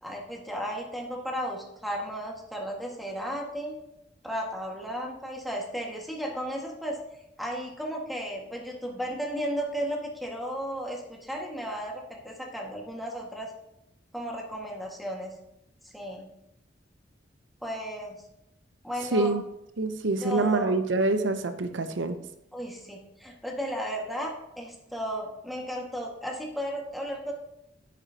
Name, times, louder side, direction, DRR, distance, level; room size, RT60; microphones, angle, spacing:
voice 1, 0.0-3.8 4.2-7.0 7.4-13.5 14.1-15.3 15.8-16.3 17.6-18.2 18.8-19.4 20.2-20.7 22.5-27.3, equal, ahead, -1 dB, 1.7 m, -34 dB
voice 2, 19.0-19.4 19.8-22.2, right 2 dB, 85° right, 9 dB, 0.7 m, -26 dB
10.0 x 9.9 x 2.8 m, 0.85 s
head